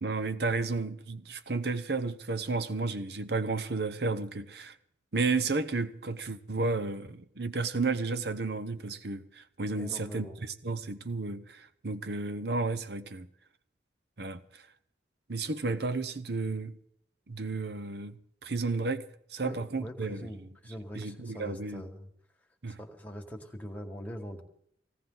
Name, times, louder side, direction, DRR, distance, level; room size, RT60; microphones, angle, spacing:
voice 1, 0.0-4.7 5.1-13.3 14.2-14.6 15.3-16.8 17.3-19.1 19.3-20.5 20.9-21.8 22.6-22.8, right 3 dB, 60° right, 0.9 m, -32 dB
voice 2, 9.7-10.4 19.4-22.1 22.7-24.4, equal, 10° left, 1.8 m, -43 dB
19.0 x 17.0 x 4.0 m
head